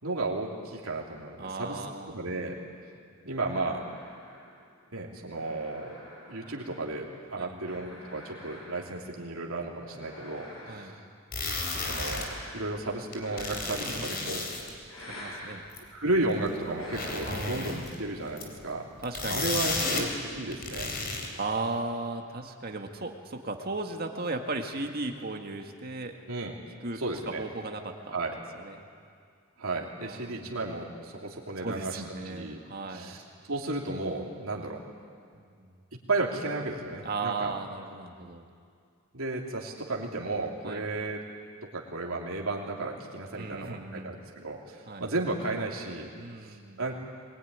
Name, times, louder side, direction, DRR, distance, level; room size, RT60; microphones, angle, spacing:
voice 1, 0.0-2.6 3.2-3.9 4.9-6.0 6.3-10.9 11.8-14.4 15.9-18.9 19.3-20.9 26.3-26.5 26.9-27.4 28.1-28.3 29.6-32.6 32.9-33.2 33.5-34.8 35.9-37.5 39.1-41.2 41.7-46.1 46.4-46.9, right 2 dB, 90° right, -1 dB, 2.9 m, -33 dB
voice 2, 1.4-2.2 3.3-3.4 7.4-7.6 10.7-10.9 13.7-14.4 15.1-15.6 17.2-17.9 19.0-19.7 21.4-26.1 26.8-28.2 28.5-28.8 30.0-30.5 31.6-33.1 35.3-35.7 37.0-38.5 40.6-40.9 43.3-44.2 44.9-45.1 46.2-46.8, right 3 dB, 45° right, 3 dB, 2.0 m, -36 dB
sound 1, 3.4-7.1 7.6-9.1 9.7-11.1 11.8-12.8 13.2-14.4 14.9-15.7 16.8-17.7, left 1 dB, 80° left, 6.4 m, -46 dB
sound 2, 11.3-12.3 13.1-14.7 15.8-15.9 16.5-16.6 16.8-18.0 18.4-18.6 19.0-20.1 20.4-21.3, left 3 dB, 45° left, 3.8 m, -33 dB
22.5 x 20.5 x 9.6 m, 2.2 s
head